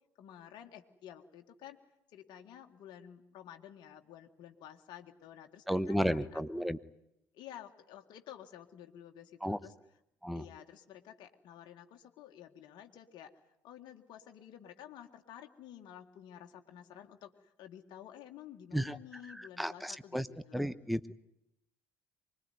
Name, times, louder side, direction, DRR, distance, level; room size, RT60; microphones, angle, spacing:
voice 1, 0.2-1.8 2.1-6.7 7.3-9.7 10.3-20.7, left 10 dB, 55° left, 4 dB, 2.0 m, -52 dB
voice 2, 5.7-6.8 9.4-9.6 10.2-10.5 18.7-20.3 20.5-21.2, equal, ahead, 15 dB, 1.2 m, -34 dB
24.5 x 21.5 x 9.5 m, 0.81 s
hypercardioid pair, 60°, 9 cm